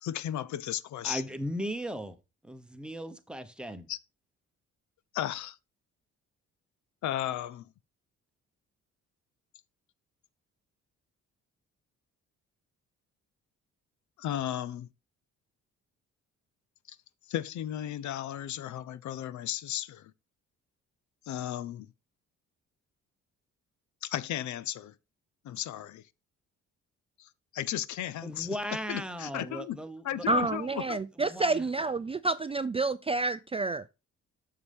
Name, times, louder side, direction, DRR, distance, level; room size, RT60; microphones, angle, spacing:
voice 1, 0.0-1.2 3.9-4.0 5.1-5.6 7.0-7.7 14.2-14.9 16.9-17.0 17.3-20.1 21.2-21.9 24.0-24.9 25.4-26.0 27.2-28.5 28.9-29.8 30.0-31.0, left 11 dB, 70° left, 0.7 m, -35 dB
voice 2, 1.0-2.2 2.4-3.9 28.2-30.3 31.2-31.6, equal, 5° right, 1.1 m, -37 dB
voice 3, 30.3-33.8, right 3 dB, 20° right, 0.4 m, -29 dB
7.0 x 6.8 x 3.5 m
cardioid pair, 90°, 30 cm